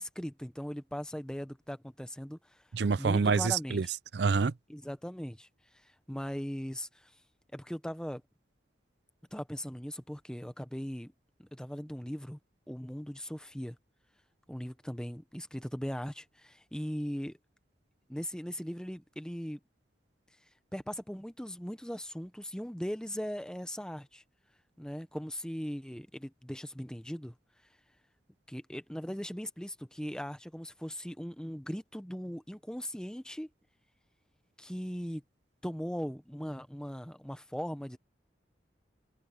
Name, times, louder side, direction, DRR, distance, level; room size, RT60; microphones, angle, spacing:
voice 1, 0.0-2.6 3.0-3.9 4.7-5.5 5.7-7.1 7.5-8.2 9.3-11.1 11.4-12.4 12.7-13.8 14.5-17.4 18.1-19.6 20.7-24.2 24.8-27.3 28.5-33.5 34.6-35.2 35.6-38.0, equal, 5° left, 0.9 m, -39 dB
voice 2, 2.7-3.9 4.1-4.5, right 5 dB, 65° right, 0.5 m, -27 dB
head